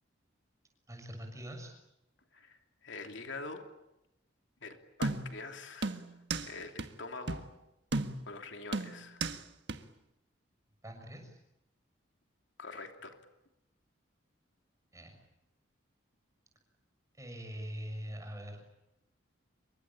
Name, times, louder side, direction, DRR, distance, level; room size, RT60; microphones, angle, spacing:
voice 1, 0.9-1.7 10.8-11.4 14.9-15.2 17.2-18.6, equal, 15° right, 4 dB, 6.8 m, -43 dB
voice 2, 2.3-3.6 4.6-6.0 6.5-7.4 8.3-9.2 12.6-13.2, left 3 dB, 70° left, 5 dB, 3.0 m, -44 dB
sound 1, 5.0-5.5 5.8-6.5 6.8-6.9 7.3-7.5 7.9-8.4 8.7-9.4 9.7-9.8, right 3 dB, 60° right, 1.6 m, -34 dB
27.0 x 23.5 x 9.0 m, 0.90 s
head